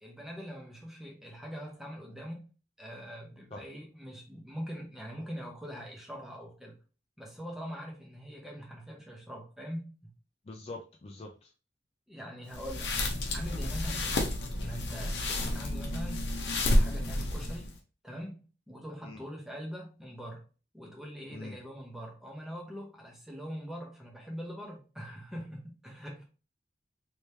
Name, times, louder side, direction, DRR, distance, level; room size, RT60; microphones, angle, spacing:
voice 1, 0.0-2.5 2.8-6.8 7.2-10.1 12.1-12.9 13.3-14.2 14.6-16.3 16.7-17.8 18.0-20.4 20.7-26.3, equal, ahead, 0.9 m, -43 dB
voice 2, 10.5-11.5 19.0-19.2 21.3-21.5, left 2 dB, 35° left, 0.4 m, -44 dB
sound 1, 12.5-17.8, left 1 dB, 70° left, 0.8 m, -30 dB
3.3 x 3.1 x 2.8 m
head